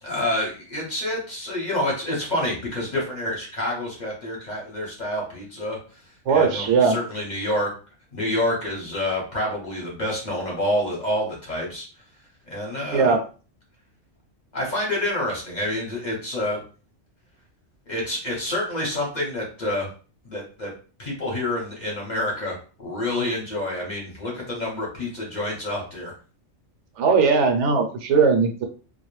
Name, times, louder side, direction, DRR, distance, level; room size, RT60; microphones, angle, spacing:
voice 1, 0.0-5.8 6.3-7.7 8.1-11.9 12.5-13.1 14.5-16.6 17.9-19.9 20.2-20.7 21.0-26.1, left 1 dB, 40° left, -2 dB, 0.8 m, -28 dB
voice 2, 6.3-7.0 12.9-13.2 27.0-28.6, right 5 dB, 75° right, 4 dB, 0.9 m, -19 dB
2.3 x 2.0 x 3.0 m, 0.37 s
omnidirectional pair, 1.3 m